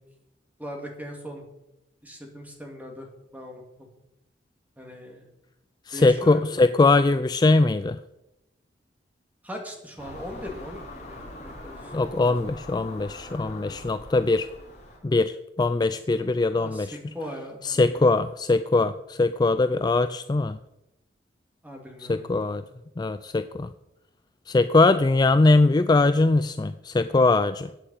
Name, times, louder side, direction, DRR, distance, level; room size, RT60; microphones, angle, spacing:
voice 1, 0.6-1.4 2.0-3.1 3.3-3.6 4.8-5.2 5.9-6.4 9.4-11.9 12.2-12.4 13.3-13.8 16.2-16.3 16.5-18.1 21.6-22.2, equal, 10° right, 2 dB, 2.5 m, -39 dB
voice 2, 5.9-8.0 11.9-14.5 15.0-17.0 17.6-20.6 22.0-22.6 23.0-23.7 24.5-27.7, left 3 dB, 20° left, 11 dB, 0.3 m, -21 dB
Car passing by / Engine, 10.0-15.0, left 1 dB, 40° left, 3.4 m, -42 dB
14.5 x 8.7 x 5.6 m, 0.90 s
head